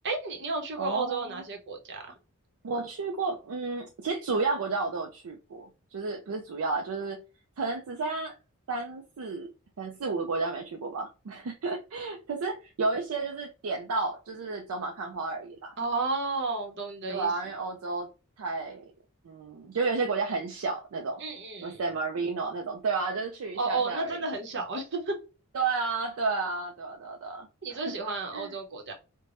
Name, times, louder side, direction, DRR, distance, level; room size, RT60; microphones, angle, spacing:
voice 1, 0.0-2.0 15.8-17.3 21.2-21.8 23.6-25.2 27.6-28.9, right 3 dB, 55° right, 0.9 m, -32 dB
voice 2, 0.8-1.4 2.6-7.2 7.6-8.4 8.7-9.5 9.8-15.7 17.1-18.1 18.4-18.8 19.2-21.2 21.6-24.2 25.5-27.9 28.3-28.5, right 4 dB, 70° right, 0.4 m, -32 dB
3.3 x 2.1 x 2.5 m
head